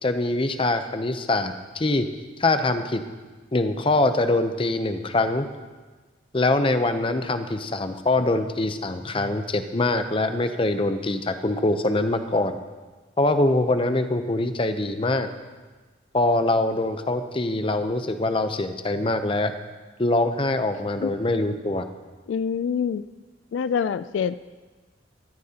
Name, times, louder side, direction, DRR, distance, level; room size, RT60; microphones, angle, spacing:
voice 1, 0.0-2.1 2.4-3.0 3.5-5.5 6.3-12.6 13.2-15.3 16.1-19.5 20.0-21.9, left 2 dB, 30° left, 8 dB, 0.7 m, -23 dB
voice 2, 22.3-23.0 23.5-24.4, left 7 dB, 80° left, 14 dB, 0.3 m, -25 dB
14.5 x 13.5 x 2.9 m, 1.3 s
head